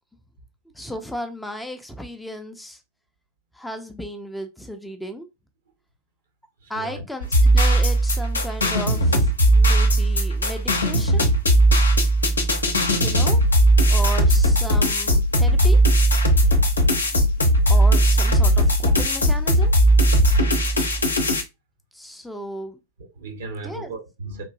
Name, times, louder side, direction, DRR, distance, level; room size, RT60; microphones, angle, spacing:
voice 1, 0.7-2.8 3.5-5.3 6.7-11.3 13.0-13.4 13.9-15.8 17.7-19.7 21.9-22.8 23.6-23.9, equal, 5° left, 0.5 m, -34 dB
voice 2, 6.6-7.0 14.0-14.1 23.0-24.4, right 3 dB, 60° right, 0.9 m, -36 dB
sound 1, 7.2-21.4, right 1 dB, 75° left, 0.6 m, -18 dB
3.6 x 2.6 x 2.5 m
figure-of-eight pair, 90°, 0 cm